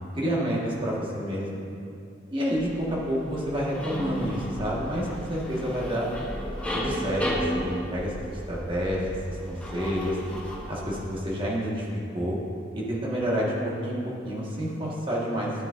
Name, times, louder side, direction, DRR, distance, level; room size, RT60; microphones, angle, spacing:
voice 1, 0.2-1.6 2.3-6.1 6.7-10.2 10.7-11.9 12.1-12.4 12.7-15.5, equal, 25° right, -5 dB, 1.5 m, -29 dB
sound 1, 2.5-11.1, equal, 5° left, 0.9 m, -34 dB
12.0 x 7.4 x 2.6 m, 2.5 s
head